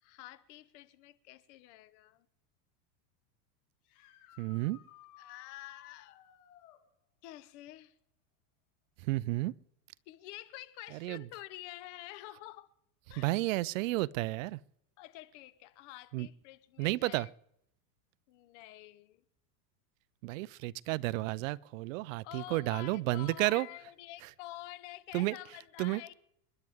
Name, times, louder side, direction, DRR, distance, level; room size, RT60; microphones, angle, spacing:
voice 1, 0.0-2.3 5.2-6.2 7.2-7.9 10.1-12.7 13.1-13.4 15.0-17.3 18.3-19.2 22.2-26.1, left 16 dB, 45° left, 0.9 m, -48 dB
sound 1, 3.8-6.8 10.1-10.2 12.3-12.4 18.6-18.7, left 11 dB, 65° left, 2.7 m, -58 dB
voice 2, 4.4-4.8 9.0-9.5 10.9-11.2 13.2-14.6 16.1-16.3 16.8-17.3 20.2-23.7 25.1-25.4 25.8-26.0, right 19 dB, 55° right, 0.5 m, -32 dB
28.0 x 11.0 x 3.6 m
supercardioid pair, 155°, 48 cm